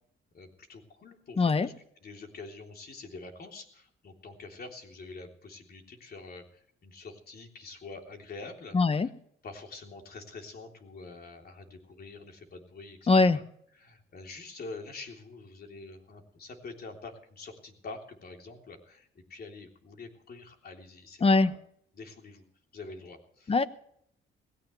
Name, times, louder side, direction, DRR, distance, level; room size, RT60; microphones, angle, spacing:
voice 1, 0.3-1.7 2.0-9.1 9.4-13.4 13.7-21.6 21.9-22.4 22.7-23.7, left 3 dB, 50° left, 3 dB, 3.4 m, -46 dB
voice 2, 1.4-1.7 8.7-9.1 13.1-13.4 21.2-21.5 23.5-23.6, left 3 dB, 30° left, 13 dB, 1.1 m, -22 dB
18.5 x 17.0 x 3.3 m, 0.67 s
cardioid pair, 90°, 20 cm